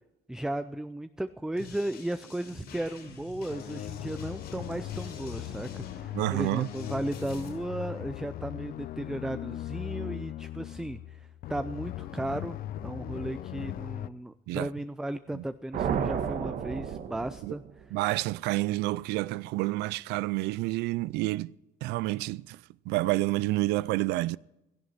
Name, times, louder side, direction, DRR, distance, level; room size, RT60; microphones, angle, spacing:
voice 1, 0.3-17.9, right 1 dB, 5° right, 0.5 m, -35 dB
sound 1, 1.6-7.5, left 4 dB, 80° left, 6.5 m, -48 dB
sound 2, 3.5-14.1, left 12 dB, 60° left, 0.6 m, -39 dB
voice 2, 6.1-6.7 14.5-14.7 15.3-15.4 17.4-17.5 17.9-21.6 21.8-24.4, right 19 dB, 90° right, 0.4 m, -29 dB
sound 3, 15.7-18.0, right 8 dB, 60° right, 1.3 m, -32 dB
17.0 x 13.5 x 4.3 m
cardioid pair, 110°, 17 cm